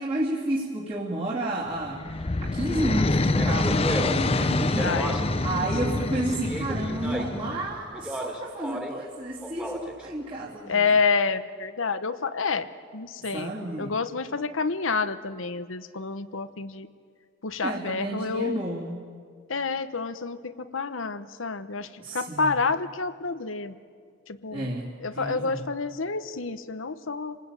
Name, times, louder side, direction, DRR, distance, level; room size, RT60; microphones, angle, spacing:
voice 1, 0.0-5.0 5.4-10.9 13.2-13.9 17.6-19.1 22.0-22.5 24.5-25.6, right 1 dB, 30° right, -7 dB, 2.8 m, -31 dB
sound 1, 1.8-7.8, left 2 dB, 30° left, 0.7 m, -26 dB
Speech, 3.3-5.5 6.3-7.5 7.9-9.0 9.4-10.1, equal, 5° right, 2.4 m, -34 dB
voice 2, 4.8-5.2 10.7-12.7 12.9-13.5 13.8-16.9 17.4-18.6 19.5-23.7 24.3-24.7 25.0-27.4, left 4 dB, 80° left, 11 dB, 1.0 m, -28 dB
28.0 x 19.5 x 9.0 m, 2.1 s
head